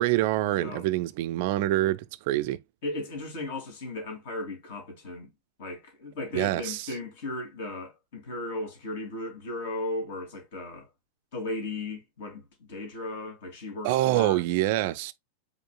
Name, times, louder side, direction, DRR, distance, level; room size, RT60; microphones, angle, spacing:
voice 1, 0.0-2.6 6.3-6.9 13.8-15.1, right 15 dB, 50° right, 0.3 m, -26 dB
voice 2, 0.5-0.9 2.8-5.3 5.6-10.9 11.3-14.4, left 2 dB, 55° left, 2.7 m, -36 dB
5.2 x 4.1 x 2.3 m
figure-of-eight pair, 90°, 0 cm